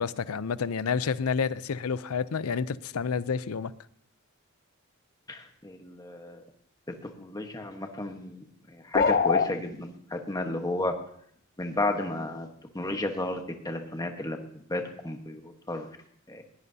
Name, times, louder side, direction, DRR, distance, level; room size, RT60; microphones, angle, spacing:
voice 1, 0.0-3.7, left 6 dB, 90° left, 0.5 m, -29 dB
voice 2, 5.3-6.4 6.9-8.4 8.7-10.9 11.6-12.5 12.7-14.4 14.7-15.9 16.3-16.4, left 2 dB, 20° left, 1.2 m, -33 dB
sound 1, 8.9-9.5, left 5 dB, 45° left, 0.5 m, -22 dB
20.5 x 16.5 x 2.8 m
head